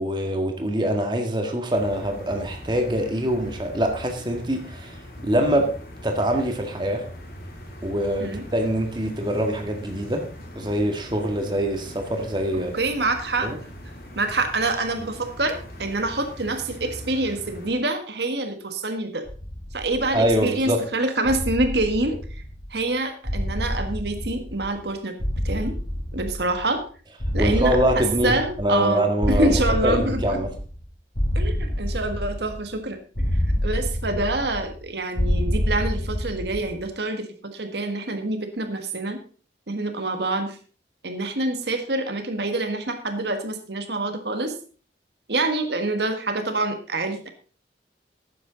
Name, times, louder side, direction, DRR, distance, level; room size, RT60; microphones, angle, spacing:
voice 1, 0.0-4.9 5.2-5.8 6.0-7.1 7.8-10.3 10.6-12.7 13.4-13.6 20.1-20.8 27.4-28.3 28.6-30.5, equal, 25° right, 4 dB, 1.7 m, -24 dB
sound 1, 1.7-17.7, equal, 55° left, 3.3 m, -41 dB
voice 2, 12.7-13.5 14.1-19.2 19.7-22.4 22.7-25.2 25.4-25.7 26.1-26.8 27.3-30.4 31.3-33.0 33.6-39.2 39.7-40.6 41.0-44.6 45.3-47.3, right 2 dB, 70° right, 7 dB, 1.5 m, -26 dB
sound 2, 19.3-20.6 21.2-22.8 23.2-24.9 25.2-26.8 27.2-28.9 29.2-30.8 31.2-32.7 33.2-34.8 35.2-36.8, equal, 35° left, 1.5 m, -27 dB
13.0 x 9.5 x 3.9 m, 0.40 s
head